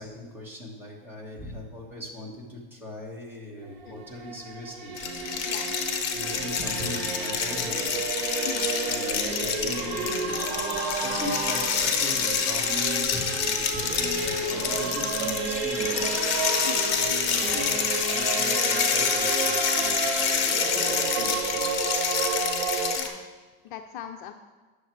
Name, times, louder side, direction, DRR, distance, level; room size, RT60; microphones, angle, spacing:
voice 1, 0.0-5.0 6.1-8.0 8.8-10.6 11.0-16.2 16.9-20.4 20.8-22.3, left 1 dB, 5° right, -2 dB, 1.4 m, -40 dB
Singing / Musical instrument, 3.6-23.0, right 4 dB, 65° right, 1.5 m, -31 dB
sound 1, 5.0-23.1, left 7 dB, 40° left, 1.0 m, -28 dB
voice 2, 16.6-17.0 21.2-21.4 23.0-23.2 23.6-24.3, left 9 dB, 60° left, 7 dB, 0.5 m, -40 dB
9.2 x 6.5 x 4.5 m, 1.4 s
supercardioid pair, 155°, 29 cm